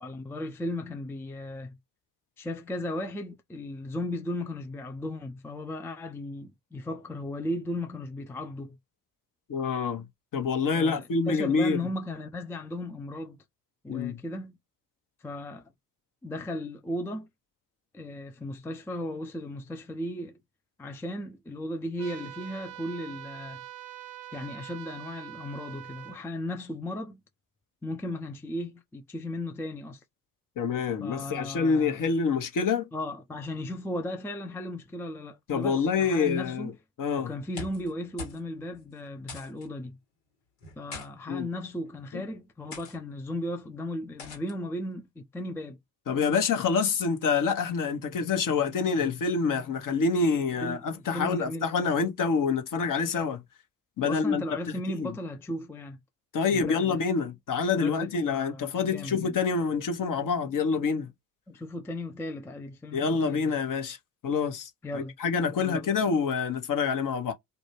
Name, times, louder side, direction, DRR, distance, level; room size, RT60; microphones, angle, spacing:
voice 1, 0.0-1.8 2.4-8.8 10.7-13.4 13.8-14.5 15.2-15.7 16.2-17.3 17.9-20.4 20.8-23.6 24.3-27.2 27.8-30.0 31.0-32.0 32.9-36.7 37.2-40.0 40.8-45.8 50.6-50.8 51.1-52.1 54.0-56.0 56.5-57.0 57.8-59.3 61.5-63.6 64.8-65.1 65.5-65.9, left 1 dB, 5° left, 0.4 m, -36 dB
voice 2, 9.5-10.0 10.3-11.8 13.9-14.2 30.6-32.9 35.5-36.7 37.0-37.3 41.3-41.5 42.1-42.2 46.1-53.4 54.0-55.1 56.3-61.1 62.9-64.0 64.2-67.3, left 5 dB, 40° left, 0.9 m, -27 dB
sound 1, 22.0-26.2, right 13 dB, 80° right, 0.6 m, -44 dB
sound 2, 37.4-37.9 38.2-38.4 38.7-38.8 39.3-39.7 40.6-41.1 41.9-42.1 42.7-43.0 44.2-44.6, left 3 dB, 80° left, 1.4 m, -41 dB
2.6 x 2.1 x 3.0 m
hypercardioid pair, 50°, 48 cm